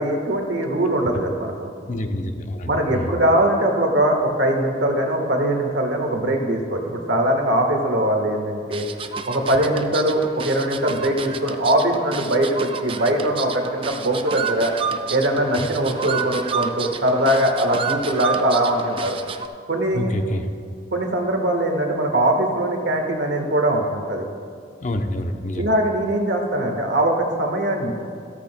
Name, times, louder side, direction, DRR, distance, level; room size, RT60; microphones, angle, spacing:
voice 1, 0.0-1.7 2.7-8.9 9.2-14.7 15.1-19.2 19.7-20.1 20.9-24.2 25.6-27.9, right 1 dB, 80° right, 3 dB, 1.4 m, -21 dB
voice 2, 1.9-3.2 15.6-15.7 19.9-20.5 24.8-25.7, left 1 dB, 40° left, 6 dB, 0.7 m, -27 dB
sound 1, 8.7-19.5, right 6 dB, 30° right, 0.4 m, -30 dB
13.5 x 13.0 x 2.2 m, 2.2 s
head